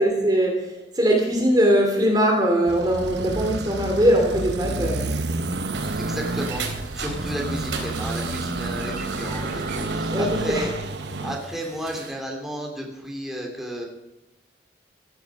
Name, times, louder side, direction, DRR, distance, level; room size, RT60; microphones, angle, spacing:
voice 1, 0.0-5.1 10.1-10.7, equal, 20° right, 1 dB, 2.5 m, -21 dB
sound 1, 2.7-11.4, right 2 dB, 65° right, 1.1 m, -30 dB
sound 2, 5.3-12.1, right 4 dB, 85° right, 3.4 m, -38 dB
voice 2, 5.4-10.7 11.0-13.8, equal, ahead, -1 dB, 2.8 m, -33 dB
sound 3, 5.7-10.7, right 1 dB, 50° right, 2.1 m, -40 dB
16.0 x 11.5 x 6.1 m, 0.98 s
head